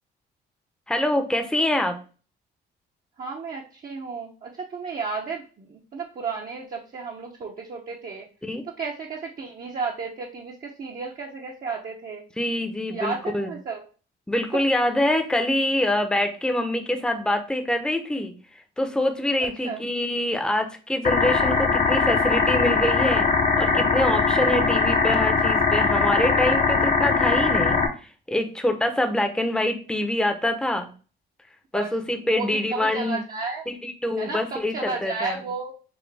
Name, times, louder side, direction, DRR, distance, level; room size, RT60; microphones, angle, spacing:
voice 1, 0.9-2.0 8.4-8.6 12.4-13.5 14.3-23.3 23.6-30.9 31.7-33.2 33.7-35.4, left 1 dB, 5° left, 6 dB, 0.7 m, -25 dB
voice 2, 3.2-8.2 8.8-12.2 12.9-13.8 19.4-19.8 31.7-31.9 32.2-33.6 34.2-35.7, right 4 dB, 45° right, -2 dB, 0.8 m, -33 dB
sound 1, 21.0-27.9, left 4 dB, 40° left, 0.7 m, -21 dB
6.1 x 2.2 x 3.4 m, 0.36 s
cardioid pair, 90°, 20 cm